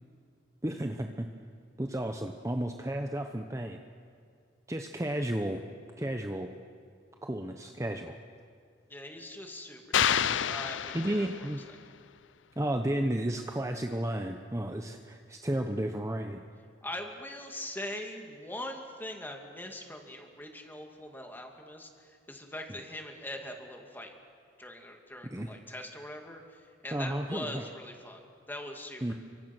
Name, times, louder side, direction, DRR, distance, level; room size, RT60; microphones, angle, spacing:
voice 1, 0.6-1.3 1.8-3.8 4.7-5.6 6.0-6.5 7.2-8.1 10.9-11.6 12.6-16.4 25.2-25.5 26.9-27.6 29.0-29.1, right 1 dB, 15° right, 5 dB, 0.9 m, -32 dB
voice 2, 8.9-10.1 10.5-11.5 16.8-24.1 24.6-28.2 28.5-29.1, left 1 dB, 10° left, 3 dB, 2.5 m, -42 dB
sound 1, 9.9-11.7, left 9 dB, 85° left, 0.6 m, -28 dB
29.5 x 24.5 x 6.2 m, 2.2 s
head